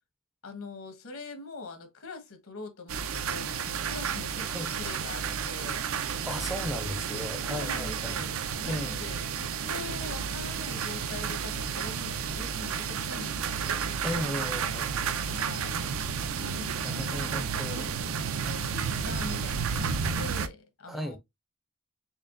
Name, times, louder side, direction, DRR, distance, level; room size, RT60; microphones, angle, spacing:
voice 1, 0.4-5.9 7.5-13.9 15.3-15.8 16.4-18.0 18.3-21.2, left 3 dB, 75° left, 1.1 m, -43 dB
sound 1, 2.9-20.5, right 6 dB, 70° right, 0.5 m, -32 dB
voice 2, 6.3-8.2 8.6-9.0 14.0-15.2 16.8-18.4 20.9-21.2, left 1 dB, ahead, 0.4 m, -36 dB
4.4 x 3.3 x 2.5 m
head